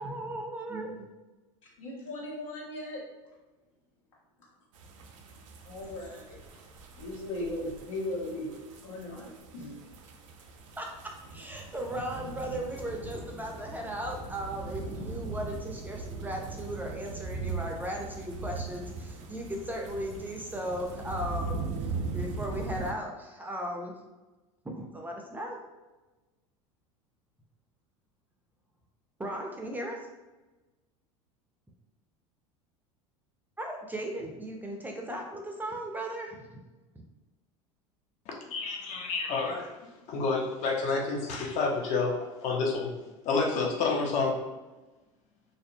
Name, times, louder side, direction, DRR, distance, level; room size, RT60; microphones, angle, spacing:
voice 1, 0.0-0.9 10.8-21.6 22.1-23.9 24.6-25.6 29.2-30.0 33.6-36.6, right 1 dB, 10° right, 0.4 m, -37 dB
voice 2, 1.8-3.0 5.6-6.4 7.0-8.5 8.8-9.8, left 1 dB, 85° left, 1.0 m, -37 dB
sound 1, 4.7-22.9, right 3 dB, 75° right, 0.4 m, -40 dB
voice 3, 38.5-42.9 43.2-44.4, left 4 dB, 45° left, 0.6 m, -29 dB
2.6 x 2.0 x 2.6 m
hypercardioid pair, 85°, 16 cm